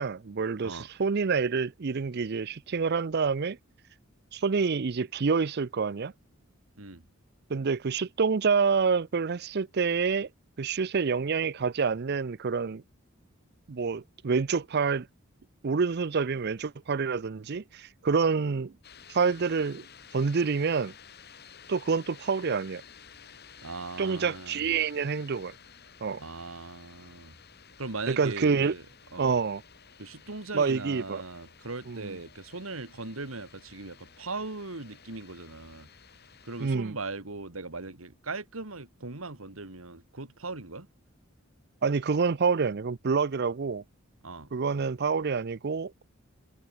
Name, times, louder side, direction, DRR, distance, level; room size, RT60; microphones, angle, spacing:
voice 1, 0.0-3.6 4.3-6.1 7.5-10.3 10.6-12.8 13.7-15.1 15.6-18.7 19.1-19.9 20.1-20.9 21.7-22.8 24.0-25.5 26.0-26.2 28.1-28.7 29.2-29.6 30.5-31.2 31.9-32.1 36.6-37.0 41.8-43.8 44.5-46.0, right 5 dB, 50° right, 0.5 m, -27 dB
sound 1, 18.8-36.8, left 7 dB, 50° left, 5.2 m, -53 dB
voice 2, 23.6-24.7 26.2-27.3 27.8-28.8 29.1-29.3 30.0-35.9 36.4-40.9 44.2-44.5, right 3 dB, 80° right, 2.5 m, -39 dB
head